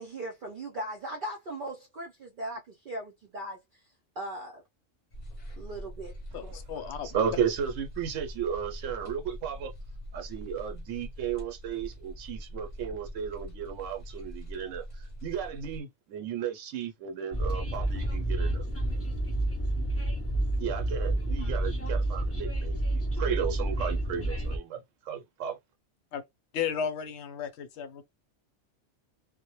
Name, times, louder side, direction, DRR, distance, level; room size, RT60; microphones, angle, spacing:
voice 1, 0.0-3.6 4.2-4.6 5.6-6.6, right 1 dB, 55° right, 0.6 m, -39 dB
sound 1, 5.1-15.8, equal, 40° left, 0.7 m, -43 dB
voice 2, 6.3-7.2 26.1-26.2 26.5-28.0, left 7 dB, 70° left, 0.9 m, -34 dB
voice 3, 7.1-9.7 10.1-14.8 15.2-18.6 20.6-25.6, right 8 dB, 85° right, 1.0 m, -34 dB
Train, 17.3-24.6, right 1 dB, 20° left, 0.3 m, -29 dB
2.1 x 2.1 x 2.9 m
omnidirectional pair, 1.3 m